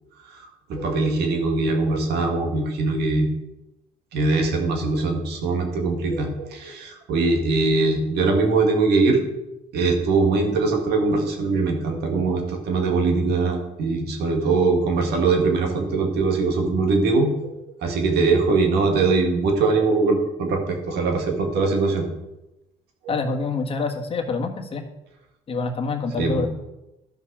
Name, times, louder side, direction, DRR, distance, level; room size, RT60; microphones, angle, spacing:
voice 1, 0.3-3.3 4.1-9.2 9.7-17.5 17.8-22.1 23.0-23.1 26.2-26.5, right 3 dB, 75° right, 3 dB, 2.2 m, -22 dB
voice 2, 23.1-24.8 25.5-26.5, left 4 dB, 35° left, 3 dB, 1.4 m, -26 dB
13.0 x 5.6 x 4.9 m, 0.94 s
cardioid pair, 110°, 17 cm